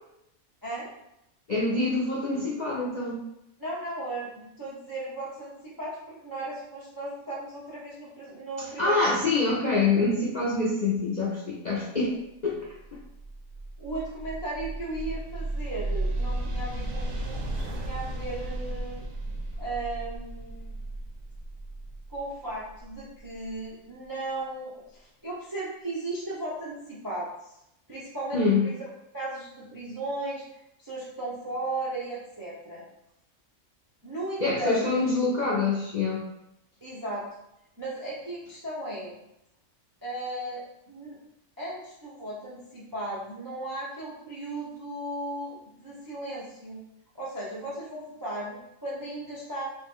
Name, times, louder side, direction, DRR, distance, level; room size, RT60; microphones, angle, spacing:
voice 1, 1.5-3.2 8.8-12.2 12.4-12.7 28.3-28.6 34.4-36.2, left 3 dB, 60° left, -6 dB, 0.4 m, -25 dB
voice 2, 3.6-9.2 12.0-12.1 13.8-19.0 19.6-20.7 22.1-27.6 27.9-28.8 29.1-30.4 30.8-32.8 34.0-34.9 36.8-37.3 37.8-39.2 40.0-41.2 41.6-46.8 47.1-49.7, right 2 dB, 30° right, -7 dB, 0.3 m, -36 dB
sound 1, 12.7-23.5, right 1 dB, 85° right, 1.0 m, -34 dB
3.0 x 2.1 x 3.5 m, 0.84 s
omnidirectional pair, 1.4 m